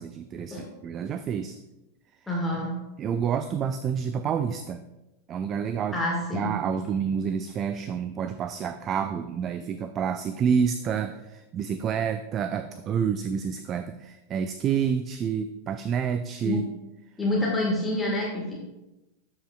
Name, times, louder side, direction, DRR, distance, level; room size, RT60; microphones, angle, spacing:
voice 1, 0.0-1.6 3.0-4.8 5.3-6.0 6.3-16.7, right 7 dB, 30° right, 10 dB, 0.3 m, -28 dB
voice 2, 2.3-2.8 5.9-6.6 16.4-16.6 17.2-18.5, left 1 dB, 10° left, -4 dB, 1.5 m, -27 dB
12.5 x 5.3 x 2.3 m, 0.98 s
figure-of-eight pair, 90°, 0 cm